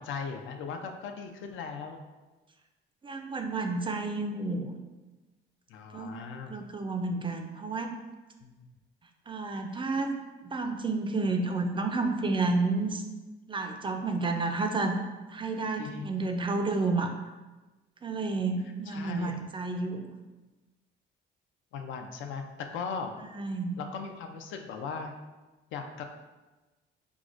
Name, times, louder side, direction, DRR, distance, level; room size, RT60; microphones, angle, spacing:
voice 1, 0.0-2.0 5.7-6.6 8.4-8.7 15.8-16.3 18.9-19.4 21.7-23.2 23.8-25.1 25.7-26.0, left 5 dB, 75° left, 5 dB, 0.4 m, -38 dB
voice 2, 3.0-4.7 5.9-6.2 6.5-8.0 9.3-10.1 10.4-13.0 13.5-15.0 15.3-17.1 18.0-20.1 23.2-23.8, right 3 dB, 25° right, 5 dB, 0.3 m, -30 dB
4.6 x 2.1 x 2.4 m, 1.2 s
cardioid pair, 90°, 20 cm